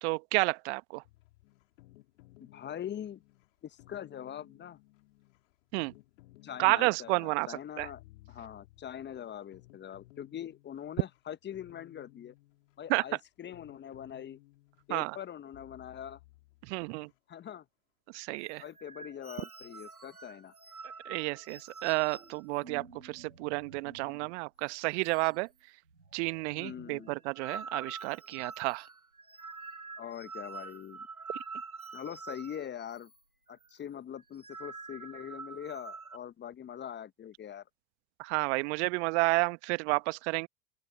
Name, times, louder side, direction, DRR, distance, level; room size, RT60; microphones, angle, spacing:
voice 1, 0.0-1.0 5.7-5.9 6.6-7.9 12.9-13.0 14.9-15.2 16.6-17.1 18.1-18.6 21.0-25.5 26.1-28.9 38.2-40.5, right 27 dB, 50° right, 1.1 m, -31 dB
sound 1, 1.0-17.2, left 19 dB, 60° left, 3.5 m, -59 dB
voice 2, 2.4-3.2 3.6-4.8 6.4-8.0 8.3-12.3 12.8-14.4 14.9-16.2 17.3-17.6 18.6-20.5 26.5-27.1 30.0-31.1 31.9-33.1 33.5-37.6, left 9 dB, 25° left, 1.3 m, -43 dB
sound 2, 18.4-24.3 24.6-24.8 25.0-25.6 25.9-33.2 33.5-33.7 34.2-36.2, right 4 dB, 85° right, 5.7 m, -47 dB
open air
figure-of-eight pair, 85°, 43 cm